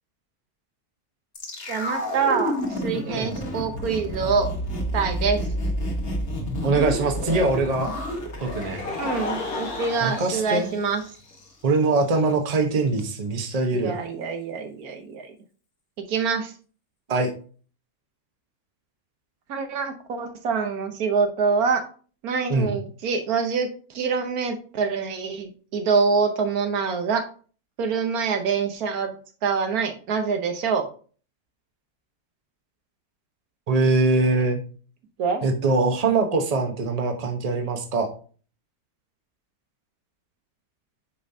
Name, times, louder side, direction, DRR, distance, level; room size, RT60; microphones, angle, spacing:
sound 1, 1.3-11.5 11.7-11.8, equal, 45° left, 1.6 m, -30 dB
voice 1, 1.7-4.5 4.9-5.4 9.0-11.0 13.7-15.3 16.1-16.5 19.5-21.8 22.2-27.2 27.8-29.1 29.4-30.9 35.2-35.4, right 5 dB, 85° right, 6 dB, 1.4 m, -25 dB
voice 2, 6.6-7.9 8.4-8.8 10.0-10.7 11.6-13.9 17.1-17.3 22.5-22.7 33.7-34.6 35.4-38.1, right 3 dB, 30° right, 4 dB, 1.0 m, -22 dB
Laughter, 8.1-11.3 12.1-12.2 13.7-13.8, left 3 dB, 75° left, 1.9 m, -34 dB
8.4 x 5.2 x 2.7 m, 0.41 s
omnidirectional pair, 1.5 m